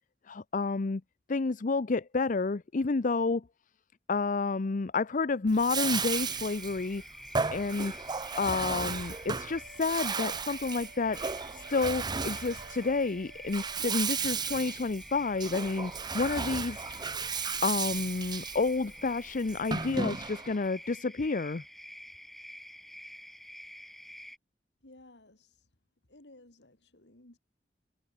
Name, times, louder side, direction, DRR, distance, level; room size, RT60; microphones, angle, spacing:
voice 1, 0.3-1.0 1.3-3.4 4.1-7.0 7.5-11.2 11.5-16.8 17.6-21.6, left 3 dB, 50° left, 0.6 m, -30 dB
Bathtub (filling or washing), 5.5-20.6, right 5 dB, 25° right, 0.9 m, -35 dB
sound 1, 5.8-24.4, equal, ahead, 4.5 m, -48 dB
sound 2, 8.5-14.2, right 4 dB, 70° right, 1.3 m, -54 dB
voice 2, 24.8-25.7 26.1-27.4, left 2 dB, 75° left, 2.9 m, -56 dB
head